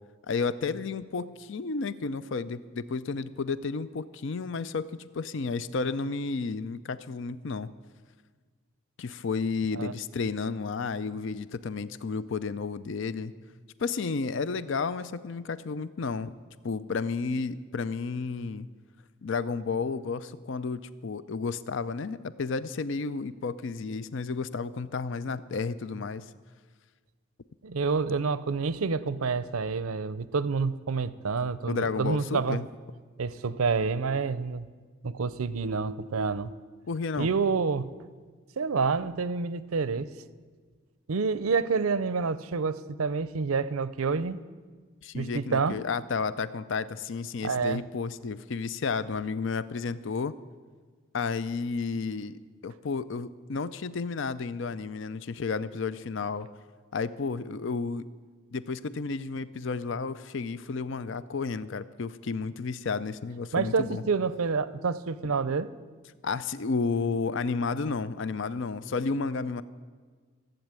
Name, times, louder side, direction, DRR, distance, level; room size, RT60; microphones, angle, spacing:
voice 1, 0.3-7.7 9.0-13.3 13.8-16.3 16.6-18.7 19.2-26.2 31.7-32.7 36.9-37.3 45.0-50.3 51.1-56.5 56.9-58.1 58.5-64.0 66.2-69.6, left 4 dB, 60° left, 16 dB, 0.5 m, -32 dB
voice 2, 27.6-32.6 33.2-34.7 35.0-36.5 37.2-37.9 38.6-40.1 41.1-44.4 45.1-45.8 47.4-47.8 63.5-65.7, right 4 dB, 85° right, 17 dB, 0.6 m, -28 dB
15.5 x 8.1 x 8.9 m, 1.5 s
head